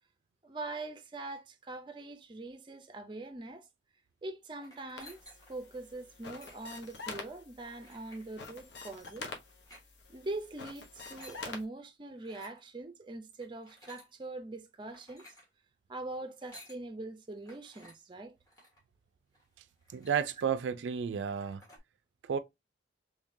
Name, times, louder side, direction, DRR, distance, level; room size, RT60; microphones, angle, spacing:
voice 1, 0.4-3.7 4.2-5.2 5.5-9.3 10.1-15.3 15.9-18.3, right 2 dB, 25° right, 0.5 m, -43 dB
sound 1, 4.6-5.6 6.2-6.8 7.8-8.3 9.5-9.9 10.8-11.4 12.2-12.6 13.4-14.1 14.8-15.5 16.3-16.8 17.5-18.0 18.5-18.8 19.3-19.4 19.7-20.5 20.9-21.0 21.2-21.8, left 1 dB, 20° left, 1.5 m, -55 dB
sound 2, 5.0-11.6, left 3 dB, 70° left, 0.8 m, -47 dB
voice 2, 19.9-21.6 22.3-22.4, right 7 dB, 80° right, 0.4 m, -32 dB
3.6 x 3.2 x 2.6 m
head